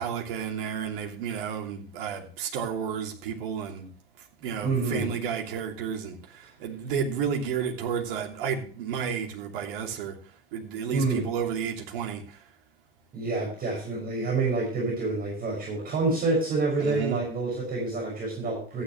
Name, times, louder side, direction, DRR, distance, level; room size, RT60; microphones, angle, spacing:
voice 1, 0.0-3.9 4.4-10.2 10.5-12.4 16.8-17.2, right 7 dB, 60° right, 2.9 m, -32 dB
voice 2, 4.6-5.1 10.9-11.3 13.1-18.8, right 3 dB, 30° right, 6.4 m, -27 dB
14.5 x 9.9 x 3.2 m
hypercardioid pair, 85°, 30 cm